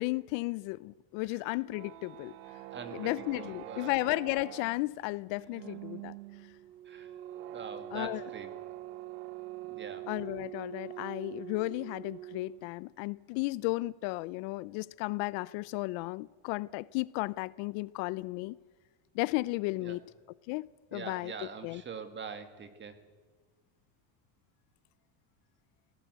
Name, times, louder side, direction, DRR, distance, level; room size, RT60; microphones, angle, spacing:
voice 1, 0.0-2.3 2.9-6.2 7.9-8.2 10.1-18.6 19.1-20.0 20.5-21.3 21.6-21.8, left 21 dB, 60° left, 0.6 m, -34 dB
sound 1, 1.5-12.7, right 15 dB, 80° right, 1.2 m, -45 dB
voice 2, 2.7-3.9 6.9-7.1 7.5-8.5 9.6-10.1 19.8-20.0 20.9-23.0, right 6 dB, 20° right, 1.9 m, -44 dB
27.0 x 17.5 x 8.1 m
cardioid pair, 155°, 49 cm